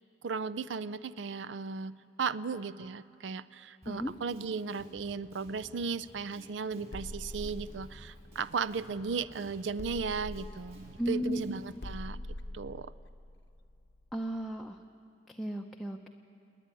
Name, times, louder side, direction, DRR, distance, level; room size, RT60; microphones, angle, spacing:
voice 1, 0.2-12.2 12.5-12.9, right 5 dB, 85° right, 17 dB, 0.5 m, -36 dB
Drum kit, 3.8-11.8, equal, 35° right, 5.4 m, -55 dB
sound 1, 6.9-9.3 9.8-14.4, left 1 dB, 70° left, 0.8 m, -44 dB
voice 2, 11.0-11.4 14.1-14.8 15.3-16.1, right 1 dB, ahead, 1 dB, 0.6 m, -34 dB
28.5 x 9.8 x 9.8 m, 2.5 s
head